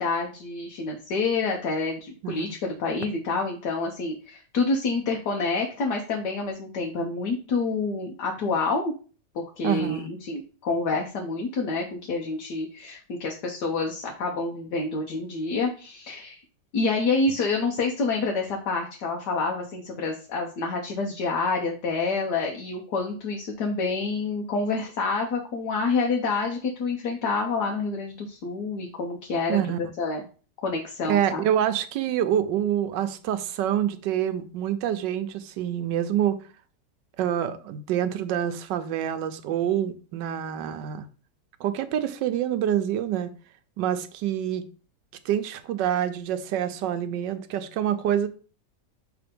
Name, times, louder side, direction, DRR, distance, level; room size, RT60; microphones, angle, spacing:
voice 1, 0.0-8.9 9.3-16.4 16.7-30.2 30.6-31.4, left 3 dB, 70° left, 1.4 m, -28 dB
voice 2, 9.6-10.1 29.5-29.8 31.1-36.4 37.2-41.1 41.6-43.3 43.8-44.6 45.2-48.3, right 10 dB, 85° right, 1.3 m, -26 dB
5.9 x 3.4 x 5.1 m
omnidirectional pair, 1.9 m